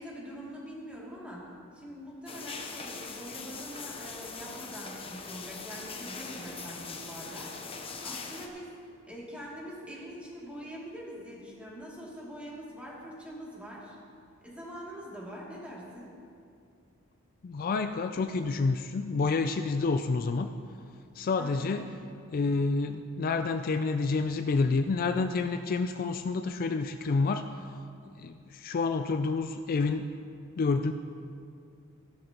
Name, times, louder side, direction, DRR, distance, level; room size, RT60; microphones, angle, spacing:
voice 1, 0.0-7.5 8.0-8.7 9.1-14.0 14.4-16.1 21.3-21.8, equal, 5° right, -6 dB, 2.6 m, -44 dB
sound 1, 2.3-8.5, left 4 dB, 25° left, 0.9 m, -41 dB
voice 2, 17.4-20.5 21.2-21.8 22.3-27.4 28.2-30.0 30.6-30.9, left 4 dB, 45° left, 8 dB, 0.4 m, -28 dB
16.0 x 11.5 x 3.0 m, 2.5 s
head